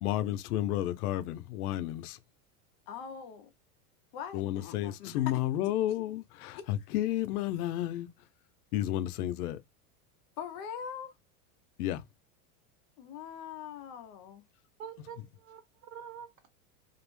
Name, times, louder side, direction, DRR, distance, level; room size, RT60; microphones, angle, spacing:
voice 1, 0.0-2.2 4.3-8.1 8.7-9.6 11.8-12.1 15.2-15.3, left 13 dB, 85° left, 0.5 m, -32 dB
voice 2, 2.9-3.5 4.1-5.2 10.4-11.1 13.0-14.4, left 7 dB, 30° left, 0.4 m, -42 dB
voice 3, 14.8-16.5, right 8 dB, 65° right, 1.2 m, -46 dB
2.4 x 2.0 x 3.0 m
supercardioid pair, 160°, 44 cm